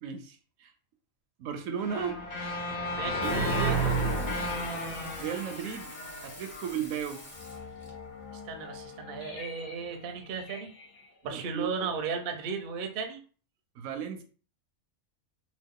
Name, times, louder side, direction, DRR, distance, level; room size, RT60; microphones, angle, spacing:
voice 1, 0.0-0.7 1.4-2.2 3.0-3.9 5.2-5.9 6.2-7.2 11.2-11.9 13.8-14.2, right 8 dB, 75° right, 7 dB, 0.9 m, -35 dB
sound 1, 1.8-6.9, right 1 dB, 90° left, 1.3 m, -31 dB
voice 2, 2.9-3.4 8.4-10.7 11.2-13.2, right 5 dB, 55° right, 6 dB, 0.6 m, -35 dB
Water tap faucet / Sink (filling or washing), 3.2-7.9 9.4-9.5, left 2 dB, 35° left, 0.9 m, -49 dB
sound 2, 3.7-12.6, left 4 dB, 65° left, 1.1 m, -48 dB
3.0 x 2.3 x 3.6 m, 0.40 s
omnidirectional pair, 1.4 m